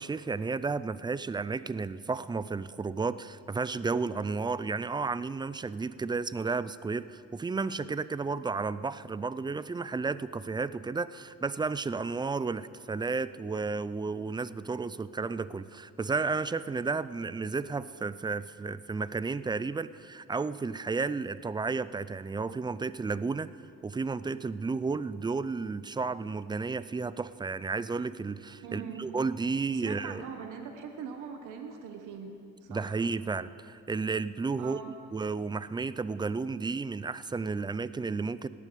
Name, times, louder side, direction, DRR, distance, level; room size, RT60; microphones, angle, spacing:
voice 1, 0.0-23.5 23.8-30.2 32.7-34.8 35.1-38.5, right 4 dB, 15° right, 16 dB, 0.4 m, -32 dB
voice 2, 28.6-29.1 29.7-32.4 32.6-33.0 34.6-34.9, right 6 dB, 85° right, 5 dB, 1.1 m, -41 dB
18.0 x 8.5 x 6.8 m, 2.6 s
cardioid pair, 90°, 30 cm